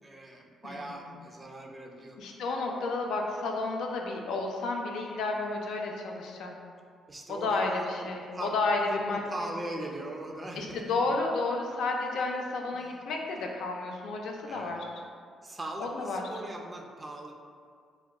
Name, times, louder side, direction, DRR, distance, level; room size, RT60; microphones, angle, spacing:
voice 1, 0.0-2.2 7.1-8.6 8.9-11.0 12.7-13.0 14.4-14.8 15.4-17.3, right 1 dB, 25° right, 1 dB, 0.3 m, -40 dB
voice 2, 2.2-6.6 7.3-9.2 10.5-14.8 15.8-16.3, left 3 dB, 80° left, 1 dB, 0.3 m, -31 dB
3.4 x 2.1 x 2.2 m, 2.1 s
cardioid pair, 90°, 0 cm